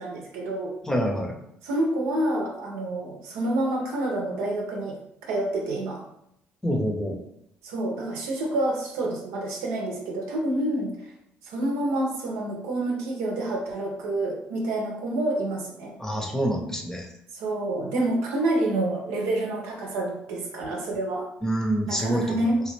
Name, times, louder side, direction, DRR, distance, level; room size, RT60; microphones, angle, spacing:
voice 1, 0.0-0.7 1.6-5.0 5.3-6.0 7.6-10.9 11.4-15.9 17.3-21.3 21.9-22.6, right 1 dB, 90° right, 0 dB, 0.7 m, -28 dB
voice 2, 0.8-1.4 6.6-7.2 16.0-17.1 21.4-22.4, equal, 10° left, 2 dB, 0.7 m, -26 dB
3.1 x 2.3 x 3.2 m, 0.78 s
supercardioid pair, 80°, 4 cm